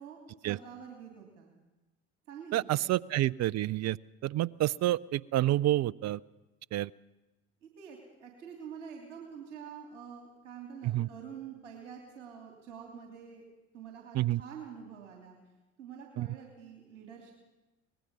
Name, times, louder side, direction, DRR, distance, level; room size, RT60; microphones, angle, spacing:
voice 1, 0.0-1.5 2.3-3.0 7.6-13.4 13.7-15.4 15.8-17.3, right 7 dB, 80° right, 1 dB, 3.1 m, -47 dB
voice 2, 2.5-4.0 4.2-6.2 6.7-6.9 10.8-11.1 14.1-14.4 16.2-16.3, right 14 dB, 45° right, 21 dB, 0.6 m, -28 dB
24.5 x 20.0 x 5.4 m, 1.1 s
hypercardioid pair, 60°, 36 cm